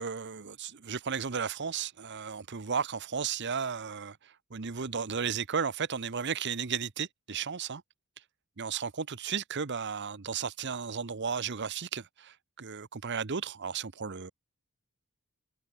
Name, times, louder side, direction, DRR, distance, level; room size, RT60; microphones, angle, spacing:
voice 1, 0.0-7.8 8.6-14.3, right 6 dB, 50° right, 0.8 m, -34 dB
head